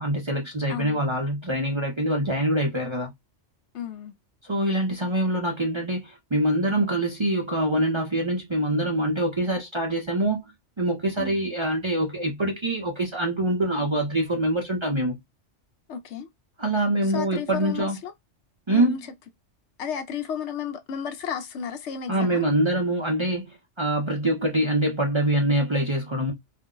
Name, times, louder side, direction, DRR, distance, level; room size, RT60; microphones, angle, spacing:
voice 1, 0.0-3.1 4.4-10.5 10.8-15.2 16.6-18.0 18.7-19.0 22.1-23.5 23.8-26.3, right 1 dB, 35° right, 0.5 m, -24 dB
voice 2, 0.7-1.0 3.7-4.1 11.2-11.4 15.9-16.3 17.0-18.1 18.7-19.0 19.8-22.4, left 7 dB, 70° left, 0.9 m, -33 dB
2.5 x 2.0 x 3.7 m
omnidirectional pair, 1.2 m